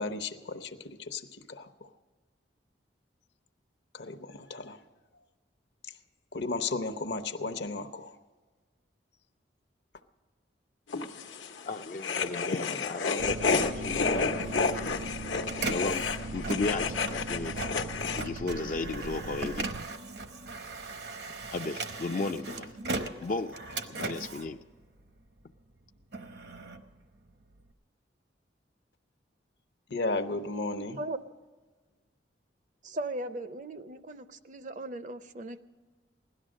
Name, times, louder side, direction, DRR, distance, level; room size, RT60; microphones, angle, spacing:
voice 1, 0.0-1.9 3.9-4.8 5.8-5.9 6.3-8.2 29.9-31.0, left 3 dB, 70° left, 0.8 m, -34 dB
sound 1, 10.9-18.2, left 4 dB, 85° left, 1.1 m, -31 dB
voice 2, 11.7-14.3 15.7-16.1 16.3-17.6 18.2-19.7 21.5-22.8 23.2-23.6 23.9-24.6, left 3 dB, 45° left, 0.4 m, -34 dB
sound 2, 13.2-19.9, right 2 dB, 90° right, 0.5 m, -40 dB
Printer, 14.0-25.4 25.9-27.7, right 3 dB, 65° right, 0.9 m, -39 dB
voice 3, 32.8-35.6, right 1 dB, 45° right, 0.5 m, -38 dB
17.0 x 12.5 x 6.3 m
head